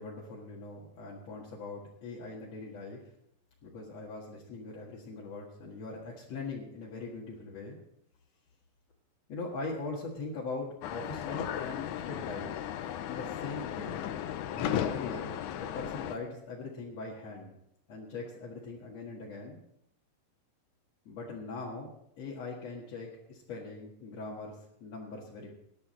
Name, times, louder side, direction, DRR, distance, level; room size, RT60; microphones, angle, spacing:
voice 1, 0.0-3.0 3.6-7.8 9.3-12.6 13.1-14.0 14.5-17.6 17.9-19.6 21.1-21.9 22.2-25.5, left 3 dB, 55° left, -4 dB, 2.7 m, -41 dB
sound 1, 10.8-16.2, left 10 dB, 75° left, 2.0 m, -36 dB
19.5 x 10.0 x 4.2 m, 0.77 s
omnidirectional pair, 4.0 m